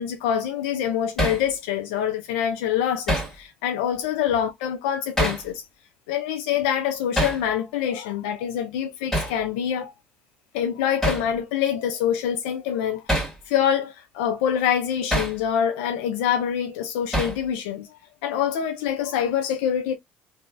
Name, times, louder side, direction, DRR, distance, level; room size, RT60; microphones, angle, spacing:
voice 1, 0.0-5.6 6.1-9.9 10.5-13.0 13.5-20.0, left 9 dB, 85° left, 0.4 m, -25 dB
Hammer, 1.2-1.4 3.1-3.4 5.2-5.5 7.2-7.4 9.1-9.4 11.0-11.3 13.1-13.4 15.1-15.4 17.1-17.4, equal, 5° left, 1.7 m, -24 dB
3.0 x 2.5 x 2.2 m
supercardioid pair, 75°, 5 cm